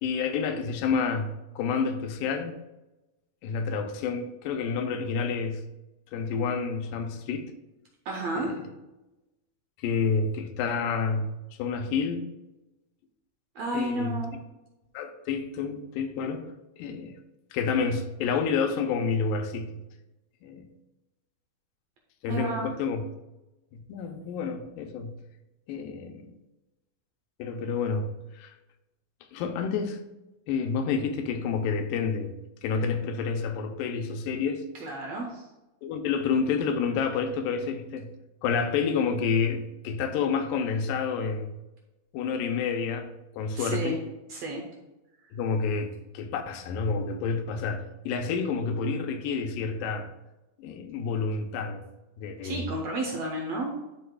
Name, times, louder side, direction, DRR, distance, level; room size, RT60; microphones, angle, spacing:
voice 1, 0.0-2.5 3.4-5.6 6.1-7.5 8.4-8.6 9.8-11.3 11.6-12.2 13.7-14.3 14.9-16.5 16.8-17.2 17.5-19.8 20.4-20.7 22.2-23.0 23.7-25.2 25.7-26.4 27.4-28.1 28.4-28.5 29.3-30.1 30.5-34.6 35.8-38.1 38.4-41.5 42.1-44.0 45.3-50.1 50.6-51.8 52.2-52.6, left 5 dB, 85° left, 6 dB, 2.3 m, -29 dB
voice 2, 8.0-8.6 13.5-14.3 22.3-22.7 34.8-35.4 43.5-44.0 44.3-44.6 52.4-53.7, right 1 dB, 70° right, 0 dB, 1.7 m, -31 dB
11.5 x 4.7 x 2.3 m, 1.0 s
omnidirectional pair, 3.9 m